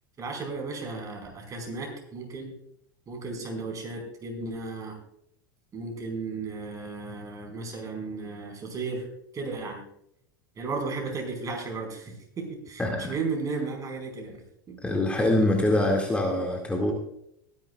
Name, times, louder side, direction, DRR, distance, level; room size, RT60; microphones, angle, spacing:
voice 1, 0.2-2.5 3.1-5.0 5.7-9.0 9.3-9.8 10.6-14.4 14.7-14.8, right 3 dB, 30° right, 2 dB, 4.8 m, -34 dB
voice 2, 14.8-16.9, left 1 dB, 10° left, 0 dB, 2.1 m, -24 dB
21.5 x 10.5 x 2.4 m, 0.74 s
hypercardioid pair, 100°, 11 cm